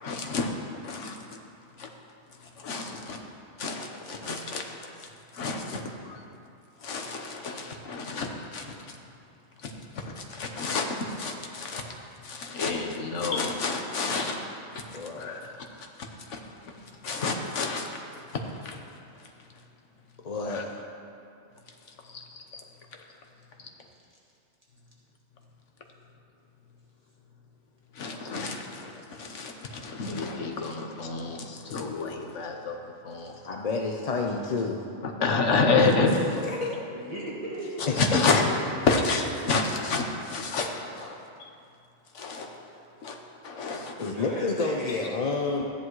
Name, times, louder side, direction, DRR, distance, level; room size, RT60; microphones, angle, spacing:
voice 1, 0.0-0.5 0.8-1.2 1.8-1.9 2.6-3.2 3.6-4.6 5.3-5.8 6.1-6.2 6.8-8.7 9.6-9.7 10.0-10.9 11.2-11.8 12.2-14.3 14.7-14.8 15.2-15.4 16.3-16.4 17.0-17.9 18.6-18.8 20.5-20.6 22.1-22.2 22.5-22.6 28.0-32.8 33.0-33.3 35.2-36.1 38.0-38.4 38.8-41.5 42.1-42.5 43.0-43.2 43.4-44.1, left 4 dB, 80° left, 3 dB, 1.4 m, -29 dB
voice 2, 14.9-15.4 20.2-20.7 33.4-34.8 36.1-36.8 37.9-38.2 44.0-45.6, left 4 dB, 40° left, 1 dB, 0.6 m, -29 dB
voice 3, 36.9-37.9 44.1-45.0, right 1 dB, 30° right, -6 dB, 1.6 m, -37 dB
14.0 x 10.0 x 3.1 m, 2.5 s
omnidirectional pair, 1.2 m